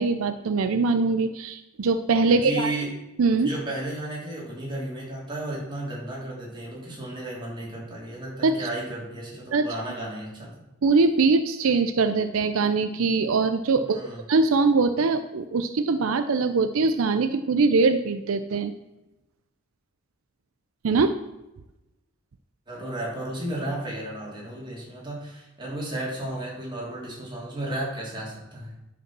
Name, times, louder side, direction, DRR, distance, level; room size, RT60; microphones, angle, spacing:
voice 1, 0.0-2.7 3.2-3.5 8.4-8.7 9.5-9.7 10.8-14.0 14.3-18.7 20.8-21.1, right 4 dB, 70° right, 10 dB, 0.5 m, -22 dB
voice 2, 2.3-2.9 3.4-10.5 13.8-14.2 22.7-28.7, right 1 dB, 20° right, -5 dB, 3.0 m, -33 dB
10.5 x 5.2 x 6.0 m, 0.97 s
head